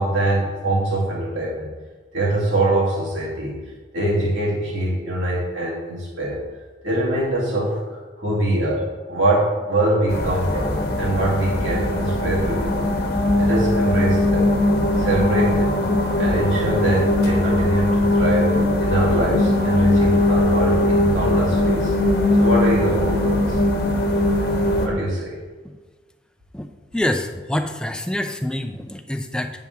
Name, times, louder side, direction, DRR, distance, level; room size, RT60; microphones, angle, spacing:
voice 1, 0.0-1.7 2.1-3.6 3.9-6.4 6.8-12.9 13.4-14.5 15.0-15.8 16.1-21.9 22.4-23.6 24.8-25.4, right 1 dB, 85° right, -5 dB, 2.2 m, -23 dB
sound 1, 10.1-24.9, left 1 dB, 50° left, 1.0 m, -20 dB
voice 2, 26.9-29.5, left 1 dB, 5° left, 6 dB, 0.4 m, -26 dB
9.1 x 7.0 x 3.5 m, 1.4 s
head